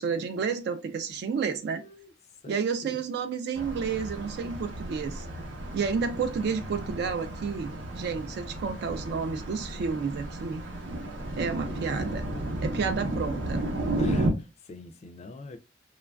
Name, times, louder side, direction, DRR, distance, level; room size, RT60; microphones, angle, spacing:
voice 1, 0.0-1.8 2.5-5.3 5.7-10.6 11.4-12.2 12.6-13.6, right 5 dB, 60° right, 0.3 m, -31 dB
voice 2, 1.5-2.1 2.4-3.0 11.5-12.2 13.0-13.3 14.0-15.6, left 2 dB, 35° left, 0.3 m, -42 dB
sound 1, 3.6-14.3, right 1 dB, 90° right, 0.7 m, -33 dB
3.0 x 2.3 x 2.2 m
head